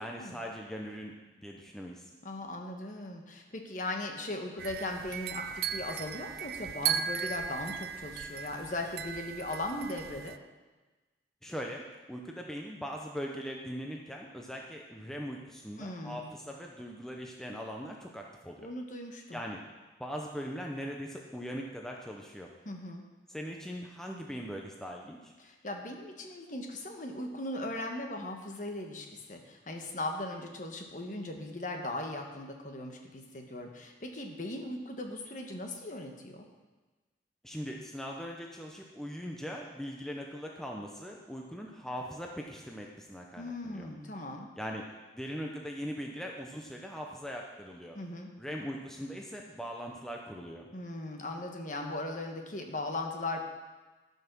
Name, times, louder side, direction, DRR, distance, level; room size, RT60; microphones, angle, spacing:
voice 1, 0.0-2.1 11.4-11.8 12.1-18.6 19.3-19.6 20.0-22.5 23.3-25.3 37.4-43.9 44.6-44.8 45.1-48.0 48.4-50.7, equal, 5° left, 0 dB, 0.7 m, -40 dB
voice 2, 2.2-10.4 15.8-16.3 18.6-19.4 22.6-23.0 25.4-36.5 43.4-44.5 47.9-48.3 50.7-53.4, left 1 dB, 45° left, 3 dB, 1.3 m, -38 dB
sound 1, 4.6-10.4, right 8 dB, 55° right, 0.4 m, -37 dB
13.0 x 5.6 x 6.1 m, 1.2 s
head